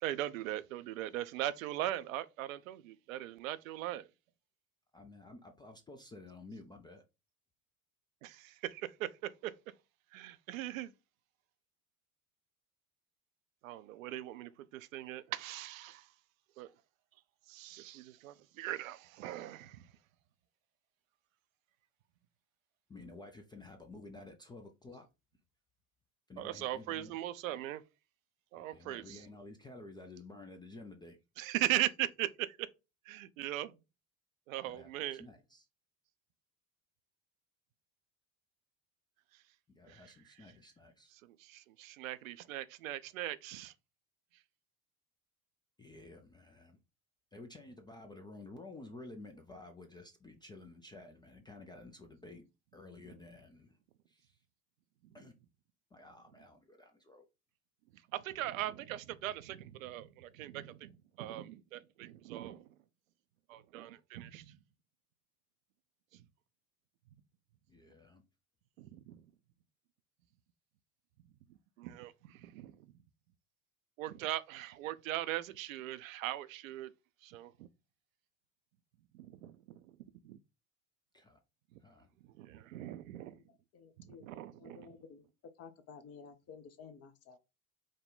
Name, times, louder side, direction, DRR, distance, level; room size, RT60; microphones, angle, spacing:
voice 1, 0.0-4.1 8.2-9.5 10.1-10.9 13.6-16.1 16.6-16.7 17.5-19.9 26.4-27.8 28.5-29.2 31.4-32.6 33.1-33.8 34.5-35.3 39.9-40.1 41.2-43.7 58.1-60.9 61.2-62.7 63.5-64.6 66.1-66.2 68.8-69.2 71.8-72.8 74.0-76.9 77.2-77.7 79.1-79.8 80.2-80.4 82.4-83.4 84.0-84.9, right 14 dB, 70° right, 0.6 m, -39 dB
voice 2, 4.9-7.0 22.9-25.1 26.3-27.2 28.7-31.2 34.6-35.7 39.7-41.1 45.8-46.8 47.3-52.5 52.7-53.8 54.1-54.4 55.1-55.3 55.9-57.2 67.7-68.2 81.1-81.4 81.8-82.1, left 2 dB, 10° left, 0.4 m, -52 dB
voice 3, 83.5-84.3 84.5-85.2 85.6-87.4, left 6 dB, 35° left, 0.7 m, -53 dB
5.0 x 2.2 x 3.8 m
figure-of-eight pair, 70°, 43 cm